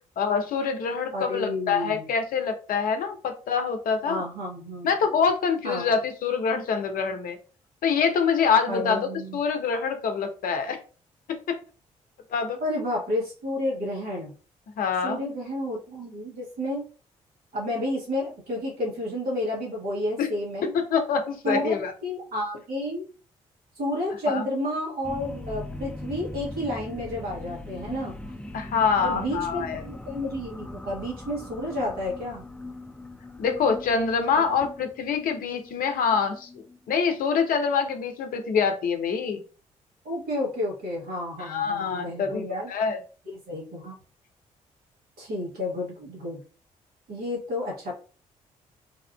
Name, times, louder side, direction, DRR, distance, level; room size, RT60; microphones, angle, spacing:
voice 1, 0.2-4.2 4.8-7.4 7.8-10.8 12.3-12.6 14.8-15.2 20.2-20.3 20.7-21.9 24.3-24.4 28.5-29.8 33.4-36.5 36.9-39.4 41.4-43.0, left 6 dB, 55° left, 6 dB, 0.6 m, -25 dB
voice 2, 1.1-2.1 4.1-4.9 5.6-6.0 8.7-9.4 12.6-14.3 15.0-16.8 17.5-20.7 21.4-21.7 22.0-23.1 23.7-28.2 29.0-32.4 34.5-34.6 40.0-42.7 43.3-44.0 45.2-46.4 47.1-47.9, left 1 dB, 60° right, -2 dB, 1.4 m, -31 dB
sound 1, 25.0-37.9, left 2 dB, 5° left, 0.4 m, -41 dB
3.4 x 2.4 x 2.2 m, 0.37 s
figure-of-eight pair, 40°, 17 cm